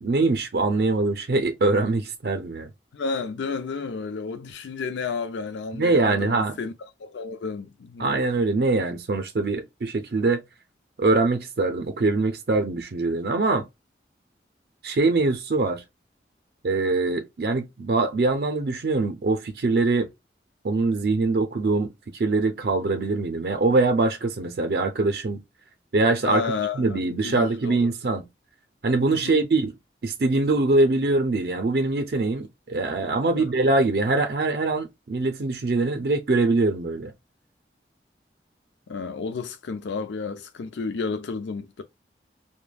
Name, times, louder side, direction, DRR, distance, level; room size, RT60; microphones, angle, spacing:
voice 1, 0.0-2.7 5.7-6.6 8.0-10.4 11.0-13.7 14.8-15.8 16.6-20.1 20.6-25.4 25.9-26.5 26.8-28.3 28.8-29.7 30.0-37.1, right 3 dB, 55° right, 0.4 m, -23 dB
voice 2, 2.9-6.7 7.0-8.1 26.2-27.9 29.1-29.5 33.3-33.4 38.9-41.8, left 4 dB, 90° left, 0.4 m, -31 dB
3.2 x 2.1 x 2.2 m
head